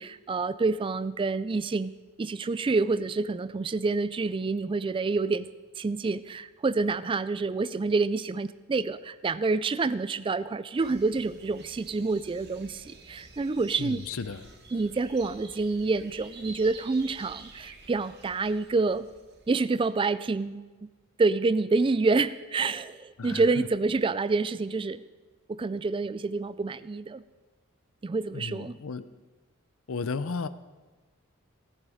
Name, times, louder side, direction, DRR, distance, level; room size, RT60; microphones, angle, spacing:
voice 1, 0.0-1.9 2.2-5.5 5.8-14.0 14.7-19.1 19.5-20.7 21.2-25.0 25.5-27.2 28.0-28.8, right 3 dB, 25° right, 16 dB, 0.3 m, -27 dB
sound 1, 10.8-20.2, right 3 dB, 50° right, 1.5 m, -50 dB
voice 2, 13.8-14.4 23.2-23.4 28.3-29.0 29.9-30.5, left 4 dB, 70° left, 13 dB, 0.6 m, -33 dB
17.0 x 11.0 x 5.0 m, 1.3 s
head